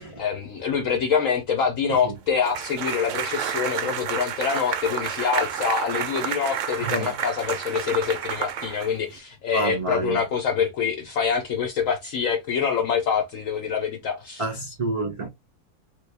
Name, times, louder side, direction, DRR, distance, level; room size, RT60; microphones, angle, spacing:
voice 1, 0.0-14.4, left 6 dB, 65° left, 1.0 m, -25 dB
sound 1, 2.4-9.2, right 8 dB, 65° right, 0.8 m, -30 dB
voice 2, 9.5-10.2 14.4-15.3, right 2 dB, 40° right, 0.4 m, -28 dB
3.3 x 2.3 x 3.3 m
omnidirectional pair, 1.6 m